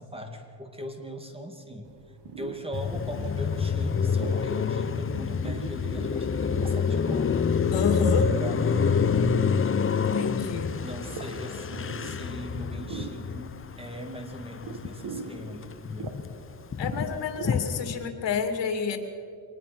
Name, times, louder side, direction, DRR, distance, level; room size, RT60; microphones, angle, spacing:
voice 1, 0.0-1.9 2.4-7.7 8.2-9.1 10.8-16.2, equal, 10° right, 5 dB, 2.3 m, -39 dB
sound 1, 1.9-18.0, right 5 dB, 65° right, 2.0 m, -43 dB
Car passing by, 2.7-15.2 15.5-18.0, left 6 dB, 30° left, 0.8 m, -27 dB
voice 2, 7.7-8.3 10.1-10.8 16.8-19.0, left 6 dB, 65° left, 6 dB, 2.7 m, -29 dB
24.0 x 20.0 x 6.1 m, 2.6 s
cardioid pair, 125°, 45 cm